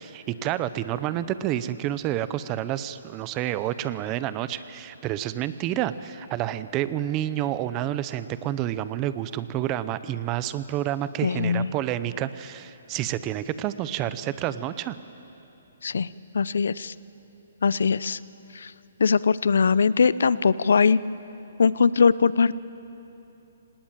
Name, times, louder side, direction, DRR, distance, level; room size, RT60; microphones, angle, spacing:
voice 1, 0.0-15.0, right 12 dB, 20° right, 14 dB, 0.6 m, -29 dB
voice 2, 11.2-11.7 15.8-16.1 16.3-16.9 17.6-18.2 18.5-18.7 19.0-21.0 21.6-22.6, left 5 dB, 75° left, 19 dB, 0.6 m, -21 dB
25.5 x 19.0 x 9.0 m, 3.0 s
hypercardioid pair, 165°, 0 cm